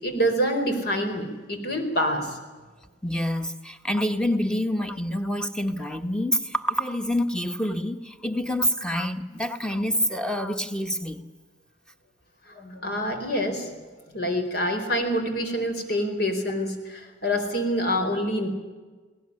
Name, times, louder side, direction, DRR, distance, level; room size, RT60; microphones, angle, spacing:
voice 1, 0.0-2.4 12.6-13.7 14.1-18.5, equal, 60° left, 5 dB, 4.4 m, -26 dB
voice 2, 3.0-11.2, equal, 5° left, 7 dB, 1.3 m, -27 dB
19.5 x 19.0 x 9.9 m, 1.3 s
head